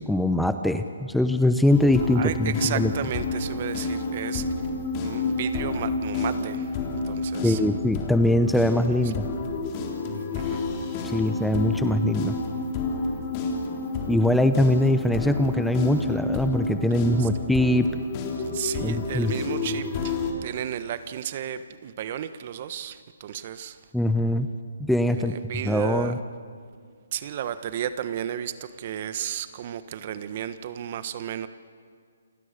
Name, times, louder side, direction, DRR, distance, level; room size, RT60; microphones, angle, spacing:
voice 1, 0.0-2.9 7.4-9.2 11.0-12.4 14.1-17.9 18.8-19.3 23.9-24.5 24.8-25.3 25.6-26.2, left 1 dB, ahead, 8 dB, 0.8 m, -22 dB
sound 1, 1.7-20.3, left 3 dB, 30° left, 3.8 m, -30 dB
voice 2, 2.1-4.5 5.0-7.6 9.0-9.1 10.1-10.6 17.2-17.3 18.5-23.9 25.1-26.1 27.1-31.5, right 10 dB, 45° right, 12 dB, 1.3 m, -33 dB
29.0 x 24.5 x 6.8 m, 2.1 s
hypercardioid pair, 150°, 0 cm